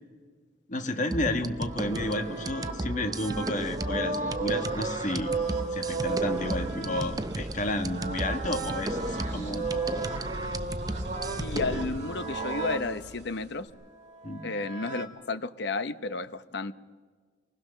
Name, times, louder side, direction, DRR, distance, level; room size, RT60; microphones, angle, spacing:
voice 1, 0.7-5.3 5.7-9.8 14.2-14.4, left 1 dB, 45° left, 6 dB, 1.5 m, -31 dB
sound 1, 1.1-11.9, right 2 dB, 20° right, 0.6 m, -36 dB
sound 2, 1.1-12.9 14.0-15.1, right 3 dB, 40° right, 2.1 m, -34 dB
sound 3, 5.4-13.7, right 1 dB, 65° right, 4.7 m, -42 dB
voice 2, 11.4-13.7 14.4-16.7, left 3 dB, 65° left, 12 dB, 0.8 m, -32 dB
26.0 x 20.0 x 6.6 m, 1.5 s
head